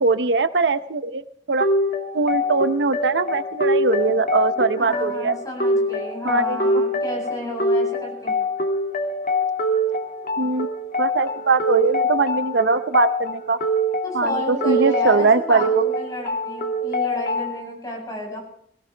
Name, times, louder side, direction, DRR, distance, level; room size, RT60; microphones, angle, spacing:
voice 1, 0.0-1.7 2.1-5.4 6.2-6.8 10.4-10.7 11.0-13.6 14.1-15.8, right 3 dB, 85° right, 11 dB, 0.7 m, -21 dB
sound 1, 1.6-17.6, equal, 55° left, 2.3 m, -24 dB
voice 2, 4.8-8.3 14.0-18.4, left 1 dB, 20° left, -1 dB, 7.9 m, -32 dB
22.5 x 17.0 x 3.4 m, 0.65 s
head